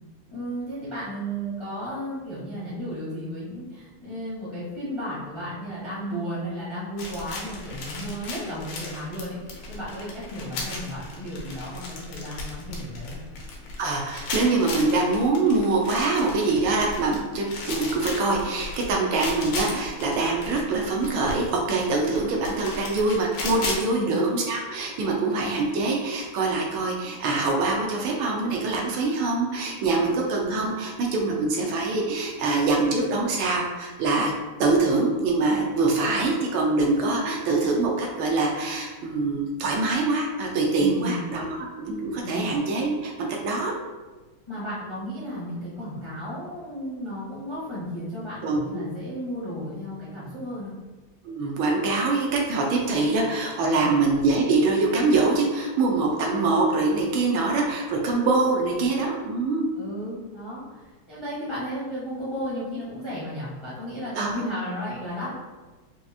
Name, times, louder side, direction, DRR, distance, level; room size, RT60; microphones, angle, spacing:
voice 1, 0.3-13.2 23.9-24.1 40.8-41.3 42.2-42.5 44.5-50.7 53.6-54.0 59.8-65.3, equal, 35° left, -9 dB, 0.4 m, -34 dB
sound 1, 7.0-23.8, left 3 dB, 85° left, 1.6 m, -36 dB
voice 2, 13.8-34.3 34.6-43.7 48.4-48.8 51.2-59.7 64.1-64.3, right 3 dB, 75° right, 0 dB, 1.4 m, -24 dB
4.6 x 2.4 x 2.6 m, 1.2 s
omnidirectional pair, 2.3 m